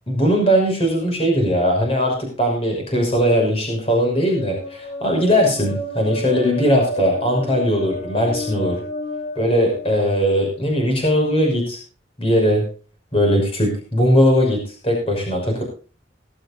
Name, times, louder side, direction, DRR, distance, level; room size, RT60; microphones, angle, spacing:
voice 1, 0.1-8.8 9.4-11.8 12.2-12.6 13.1-15.6, equal, 30° left, 1 dB, 5.8 m, -19 dB
sound 1, 3.7-10.6, left 1 dB, 85° left, 8.0 m, -31 dB
19.5 x 13.5 x 2.6 m, 0.35 s
head